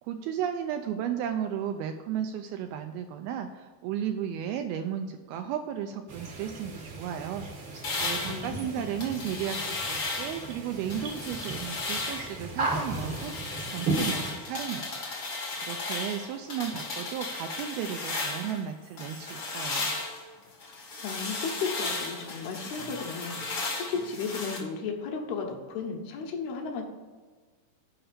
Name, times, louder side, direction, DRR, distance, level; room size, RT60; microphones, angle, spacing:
voice 1, 0.0-15.1 15.6-19.9, right 9 dB, 85° right, 6 dB, 2.2 m, -34 dB
sound 1, 6.1-14.3, right 3 dB, 60° right, 1.2 m, -36 dB
sound 2, 7.8-10.5 10.9-12.4 12.7-18.6 19.0-24.6, left 3 dB, 55° left, 1.1 m, -35 dB
voice 2, 8.3-8.9 21.0-26.8, left 5 dB, 75° left, 2 dB, 2.9 m, -34 dB
7.9 x 5.5 x 6.7 m, 1.4 s
omnidirectional pair, 4.7 m